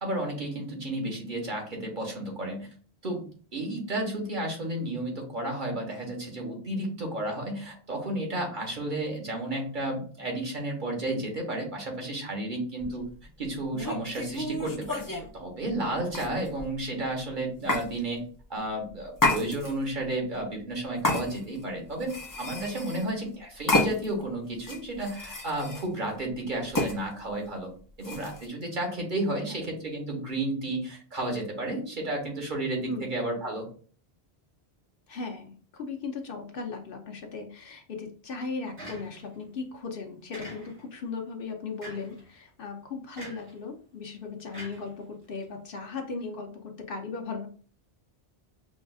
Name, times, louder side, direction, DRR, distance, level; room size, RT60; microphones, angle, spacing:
voice 1, 0.0-2.7 3.0-3.2 3.5-13.0 13.4-15.0 15.3-18.2 18.5-27.7 28.0-33.7, right 1 dB, 50° right, 1 dB, 1.1 m, -32 dB
sound 1, 12.8-13.0 13.7-15.3 16.1-16.7 17.7-17.9 19.2-19.9 21.0-21.6 22.0-23.1 23.7-24.2 24.6-25.9 26.7-27.0 28.0-28.5, left 2 dB, 25° left, 0.5 m, -29 dB
voice 2, 35.1-47.5, left 4 dB, 60° left, 3 dB, 0.8 m, -37 dB
sound 2, 38.8-39.4 40.3-41.0 41.8-42.2 43.2-43.6 44.5-45.4, right 1 dB, 75° right, 2.1 m, -44 dB
6.1 x 2.4 x 2.3 m, 0.43 s
omnidirectional pair, 1.1 m